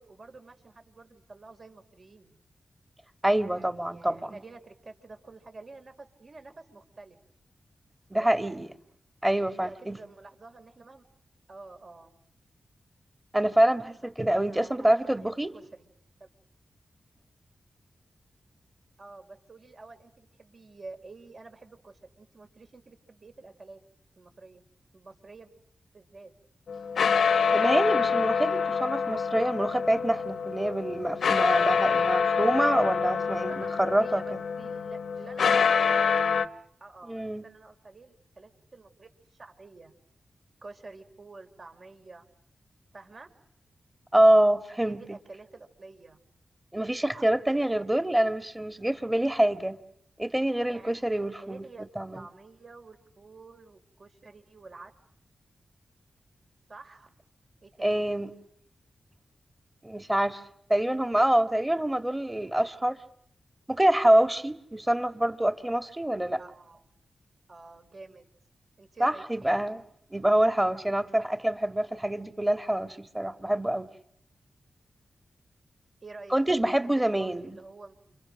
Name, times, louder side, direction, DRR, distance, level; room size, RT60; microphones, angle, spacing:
voice 1, 0.0-2.3 3.5-7.2 8.1-8.3 9.3-11.0 11.5-12.2 13.9-14.1 14.5-15.9 16.2-16.3 19.0-23.8 24.2-24.6 24.9-25.5 25.9-26.3 33.2-36.2 36.8-39.9 40.6-42.3 42.9-43.3 44.8-46.2 47.0-47.3 47.5-48.1 50.6-51.9 52.1-54.9 56.7-57.1 57.6-58.1 66.4-67.0 67.5-68.3 68.8-69.5 76.0-78.2, right 3 dB, 50° right, 5.0 m, -49 dB
voice 2, 3.2-4.3 8.1-8.7 9.2-10.0 13.3-15.5 27.5-34.4 37.1-37.4 44.1-45.0 46.7-49.8 50.2-51.6 52.0-52.2 57.8-58.3 59.8-60.4 60.7-63.0 63.7-66.4 69.0-69.8 70.1-73.9 76.3-77.6, right 1 dB, 15° right, 2.0 m, -26 dB
sound 1, 26.7-36.5, left 6 dB, 85° left, 1.0 m, -26 dB
29.0 x 27.5 x 6.5 m
cardioid pair, 65°, 0 cm